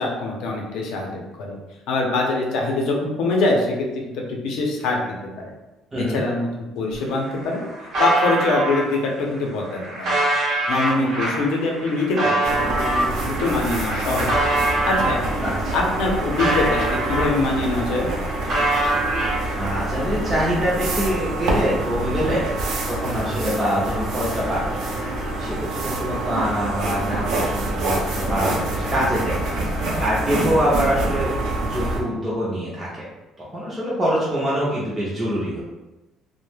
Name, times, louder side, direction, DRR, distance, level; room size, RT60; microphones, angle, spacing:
voice 1, 0.0-1.6 1.9-5.5 6.0-6.5 6.8-7.6 8.0-10.2 10.7-14.3 14.8-15.2 15.7-18.1, left 2 dB, 75° left, 0 dB, 0.6 m, -24 dB
voice 2, 5.9-6.2 15.4-15.7 19.6-22.5 22.9-24.8 25.4-29.4 29.6-29.7 30.0-31.3 31.7-32.9 33.4-35.6, equal, 10° right, -8 dB, 0.4 m, -24 dB
sound 1, 6.9-7.0 7.3-8.8 9.4-15.2 15.7-17.6 17.9-19.7, right 2 dB, 50° right, 0.8 m, -24 dB
sound 2, 12.4-32.0, right 2 dB, 80° right, 0.5 m, -26 dB
2.2 x 2.0 x 3.1 m, 1.1 s
cardioid pair, 170°, 0 cm